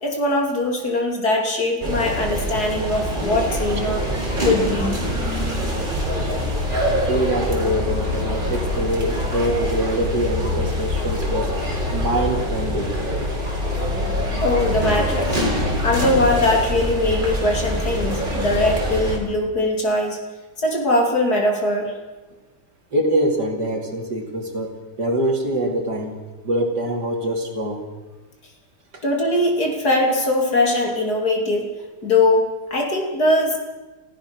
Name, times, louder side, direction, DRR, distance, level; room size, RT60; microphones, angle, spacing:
voice 1, 0.0-4.0 4.4-5.0 14.4-15.5 15.8-20.2 20.6-21.9 29.0-31.7 32.0-33.6, left 2 dB, 50° left, 1 dB, 3.4 m, -21 dB
sound 1, 1.8-19.2, left 1 dB, 25° right, 3.9 m, -24 dB
voice 2, 6.9-11.5 11.9-13.0 22.9-26.1 26.4-27.8 28.9-29.0, right 1 dB, 55° right, 2 dB, 3.1 m, -24 dB
29.5 x 15.0 x 6.2 m, 1.2 s
omnidirectional pair, 2.2 m